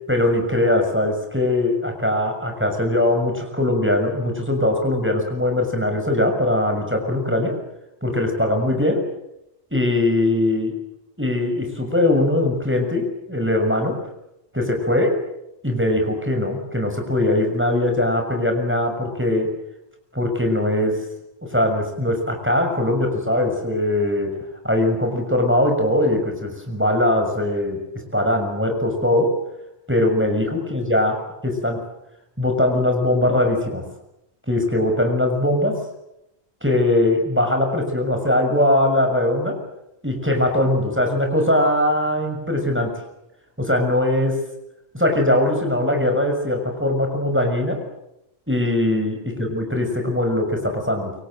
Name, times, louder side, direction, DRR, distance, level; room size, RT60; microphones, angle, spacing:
voice 1, 0.1-7.6 8.0-9.0 9.7-10.7 11.2-14.0 14.5-15.2 15.6-19.5 20.1-21.0 21.4-24.4 24.6-29.3 29.9-31.2 31.4-31.8 32.4-33.8 34.5-35.8 36.6-39.6 40.0-43.0 43.6-44.4 44.9-47.8 48.5-51.1, left 1 dB, 10° right, 4 dB, 6.5 m, -21 dB
29.5 x 24.5 x 7.9 m, 0.87 s
omnidirectional pair, 1.2 m